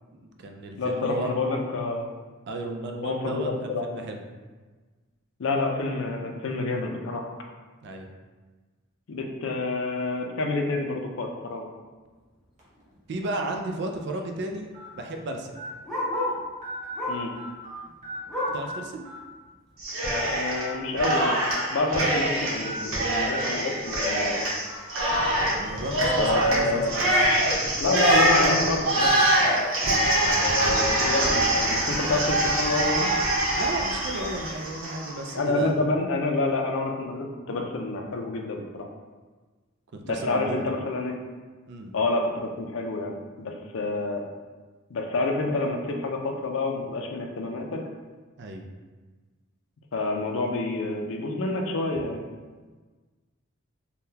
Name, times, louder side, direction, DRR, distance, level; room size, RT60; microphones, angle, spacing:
voice 1, 0.1-1.3 2.5-4.2 7.8-8.1 13.1-14.7 15.0-15.6 18.5-19.0 25.5-27.1 30.2-30.5 33.6-35.7 39.9-40.7 41.7-41.9 48.4-48.6, right 2 dB, 55° right, 3 dB, 0.4 m, -34 dB
voice 2, 0.8-2.1 3.0-3.8 5.4-7.3 9.1-11.7 17.1-17.3 20.3-21.4 21.7-24.5 26.2-26.9 27.8-29.5 30.4-33.1 35.3-38.9 40.0-41.1 41.9-44.3 44.9-47.8 49.9-52.2, left 2 dB, 65° left, 2 dB, 0.4 m, -28 dB
sound 1, 12.6-12.8 13.5-13.6 14.7-14.9 15.6-15.7 16.1-16.2 16.6-17.8 18.0-18.7 19.1-19.2 20.5-20.7 21.1-21.2 22.6-22.8 23.3-23.4 23.9-24.0 24.6-24.8, right 2 dB, 35° right, 0.8 m, -39 dB
Bark, 12.7-13.0 13.3-13.4 13.6-16.5 16.9-17.4 17.7-18.7 19.2-19.3 19.7-19.8 20.5-20.6, left 1 dB, 5° left, 0.6 m, -32 dB
Cheering, 19.8-20.6 20.9-35.3, right 1 dB, 70° right, 0.9 m, -24 dB
3.6 x 2.2 x 2.7 m, 1.3 s
head